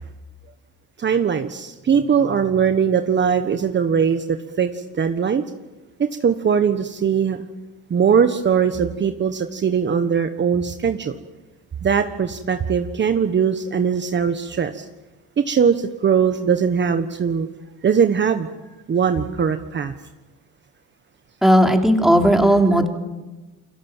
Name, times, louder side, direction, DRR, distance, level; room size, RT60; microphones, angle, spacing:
voice 1, 1.0-5.4 6.0-7.4 7.9-11.1 11.8-14.9 15.4-17.5 17.8-18.5 18.9-19.9, right 7 dB, 35° right, 8 dB, 1.4 m, -20 dB
voice 2, 21.4-22.9, equal, ahead, 3 dB, 3.3 m, -15 dB
29.5 x 23.5 x 7.4 m, 1.1 s
cardioid pair, 105°, 31 cm